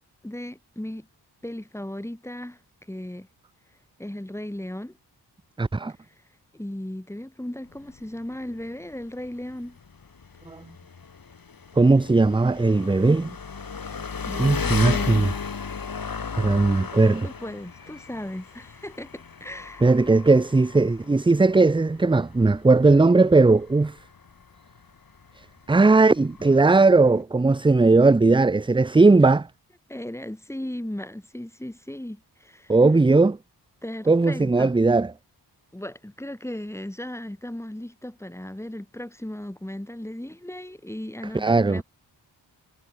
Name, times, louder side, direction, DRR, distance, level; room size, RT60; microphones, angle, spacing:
voice 1, 0.2-1.1 1.4-2.6 2.9-3.3 4.0-5.0 6.5-9.8 14.3-15.4 17.2-19.8 29.9-32.7 33.8-34.7 35.7-41.8, left 1 dB, 5° left, 2.3 m, -36 dB
voice 2, 5.6-5.9 10.5-10.6 11.8-13.4 14.4-15.3 16.4-17.3 19.8-24.0 25.7-29.5 32.7-33.4 34.1-35.1 41.3-41.8, right 3 dB, 10° right, 0.5 m, -18 dB
Engine, 7.6-27.2, left 5 dB, 55° left, 4.2 m, -35 dB
cardioid pair, 70°, 42 cm